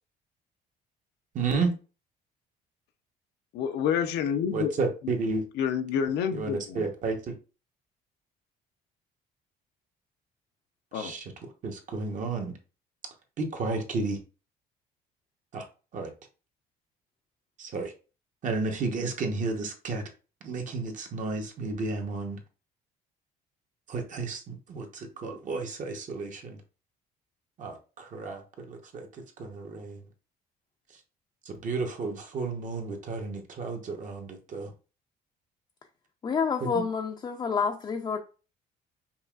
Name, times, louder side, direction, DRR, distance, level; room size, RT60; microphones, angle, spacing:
voice 1, 1.3-1.7 4.5-5.4 6.3-7.4 10.9-11.3 11.6-12.6 13.4-14.2 15.5-15.7 15.9-16.1 17.6-17.9 18.4-20.0 20.4-22.4 23.9-26.6 27.6-28.4 28.7-30.0 31.4-34.7 36.6-36.8, right 3 dB, 50° right, 1.0 m, -32 dB
voice 2, 3.5-4.7 5.6-6.9 10.9-11.1, left 8 dB, 80° left, 0.5 m, -28 dB
voice 3, 36.2-38.2, left 6 dB, 25° left, 0.4 m, -28 dB
5.5 x 2.4 x 2.4 m
cardioid pair, 110°, 17 cm